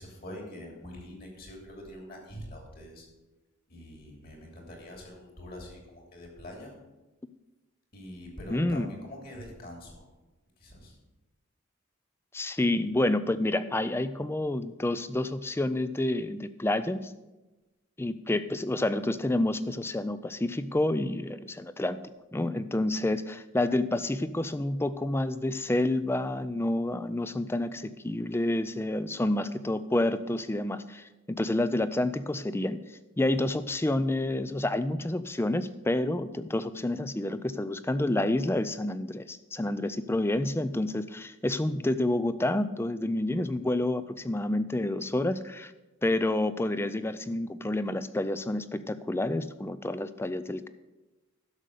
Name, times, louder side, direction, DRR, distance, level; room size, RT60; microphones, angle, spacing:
voice 1, 0.0-3.1 3.7-6.7 7.9-10.1 10.6-10.9, equal, 45° left, 1 dB, 2.9 m, -44 dB
voice 2, 8.5-8.9 12.3-17.1 18.0-22.0 22.3-32.8 33.2-45.7 46.0-50.7, left 1 dB, 10° left, 13 dB, 0.4 m, -29 dB
11.0 x 6.8 x 6.6 m, 1.1 s
head